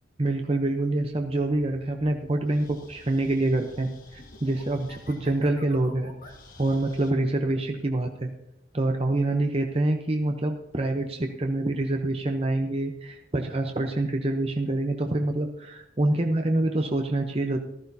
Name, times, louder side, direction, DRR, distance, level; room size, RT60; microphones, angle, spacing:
voice 1, 0.2-8.3 8.7-17.6, right 2 dB, 30° right, 3 dB, 0.8 m, -26 dB
sound 1, 1.0-7.1, left 2 dB, 50° left, 1.7 m, -50 dB
14.5 x 13.5 x 2.8 m, 0.86 s
head